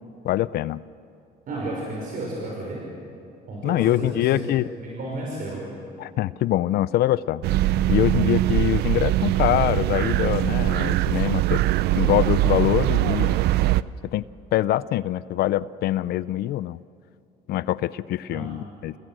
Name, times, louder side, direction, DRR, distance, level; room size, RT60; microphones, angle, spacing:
voice 1, 0.2-0.8 3.6-4.7 6.0-7.4 7.9-11.6 11.9-13.4 14.1-14.2 14.5-16.8 17.5-18.9, left 14 dB, 70° left, 18 dB, 0.5 m, -24 dB
voice 2, 1.5-2.8 3.5-4.4 4.8-5.6 18.3-18.5, right 2 dB, 55° right, -3 dB, 5.9 m, -32 dB
sound 1, 7.4-13.8, right 15 dB, 75° right, 0.5 m, -22 dB
28.0 x 19.0 x 7.8 m, 2.7 s
cardioid pair, 110°, 17 cm